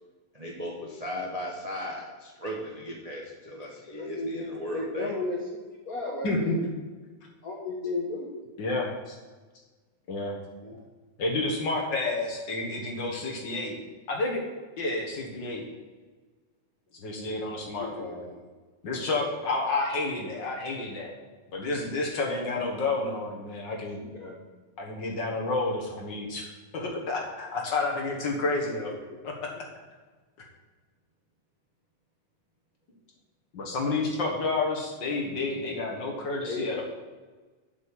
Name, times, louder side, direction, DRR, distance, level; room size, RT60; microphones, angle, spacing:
voice 1, 0.3-5.1, left 1 dB, 65° right, -3 dB, 0.3 m, -36 dB
voice 2, 3.9-6.6 7.4-8.4 10.6-10.8 17.8-18.4 24.0-24.4 29.1-29.2 36.4-36.8, left 2 dB, 80° left, -1 dB, 0.8 m, -35 dB
voice 3, 6.2-6.7 8.6-9.1 10.1-10.4 11.2-13.8 14.1-14.4 14.8-15.6 17.0-18.2 18.8-21.1 21.5-24.0 24.8-26.5 26.7-28.9 29.2-29.3 33.5-36.8, left 3 dB, 50° left, -1 dB, 1.6 m, -30 dB
7.2 x 6.3 x 7.4 m, 1.3 s
omnidirectional pair, 3.4 m